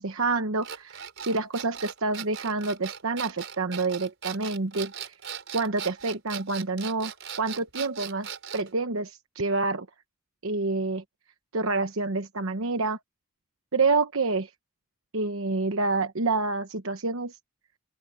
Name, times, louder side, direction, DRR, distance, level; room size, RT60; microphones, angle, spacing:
voice 1, 0.0-5.1 5.5-9.9 10.4-11.0 11.5-13.0 13.7-14.5 15.1-17.4, right 3 dB, 75° right, 1.1 m, -28 dB
sound 1, 0.6-8.7, right 8 dB, 60° right, 5.5 m, -38 dB
open air
head